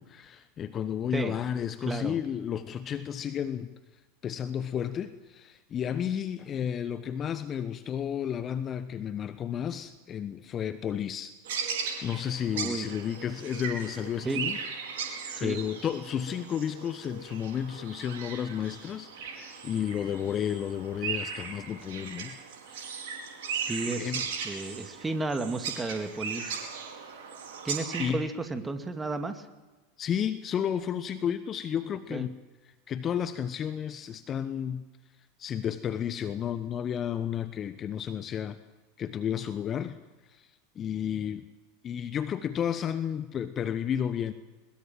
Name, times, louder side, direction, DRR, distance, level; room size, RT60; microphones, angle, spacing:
voice 1, 0.0-3.7 4.2-11.7 12.0-14.6 14.9-22.4 22.7-23.1 24.0-24.2 28.0-28.2 30.0-32.3 32.9-34.8 35.4-38.6 39.0-40.0 40.3-40.5 40.7-41.4 41.8-44.3, left 9 dB, 35° left, 12 dB, 1.1 m, -32 dB
voice 2, 1.8-2.2 12.5-12.9 14.2-14.4 15.3-15.6 23.7-26.6 27.6-29.5 32.1-32.3, right 3 dB, 15° right, 8 dB, 2.2 m, -33 dB
sound 1, 11.5-28.1, right 6 dB, 65° right, 4.8 m, -37 dB
21.5 x 21.5 x 7.5 m, 1.2 s
figure-of-eight pair, 80°, 0 cm